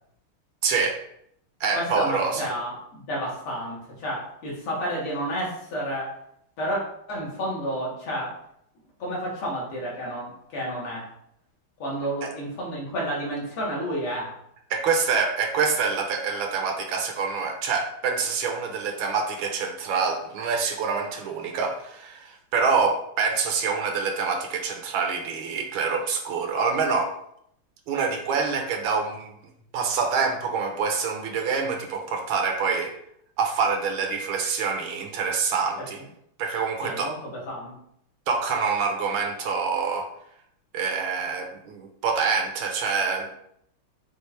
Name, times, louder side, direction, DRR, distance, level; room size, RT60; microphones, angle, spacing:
voice 1, 0.6-1.0 1.6-2.5 12.2-12.3 14.7-27.1 27.9-29.3 29.7-32.9 33.4-36.0 36.4-37.1 38.3-40.1 40.7-43.3, right 5 dB, 75° right, 3 dB, 1.4 m, -26 dB
voice 2, 1.7-6.2 6.6-6.8 7.1-8.4 9.0-11.1 11.8-14.3 35.8-35.9 36.8-37.8, equal, 80° left, -5 dB, 2.4 m, -31 dB
6.5 x 2.4 x 3.1 m, 0.72 s
omnidirectional pair, 2.4 m